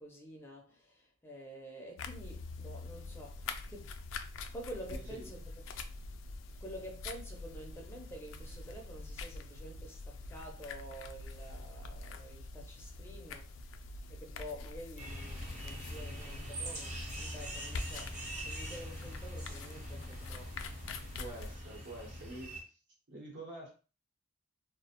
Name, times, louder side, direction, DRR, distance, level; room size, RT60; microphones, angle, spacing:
voice 1, 0.0-3.9 4.5-5.6 6.6-20.7, equal, 10° left, 0.4 m, -49 dB
sound 1, 2.0-21.6, left 3 dB, 75° left, 0.3 m, -45 dB
voice 2, 4.9-5.3 21.2-22.6 23.1-23.7, right 1 dB, 65° right, 0.9 m, -46 dB
sound 2, 15.0-22.6, equal, 40° right, 0.9 m, -43 dB
2.3 x 2.1 x 2.8 m
head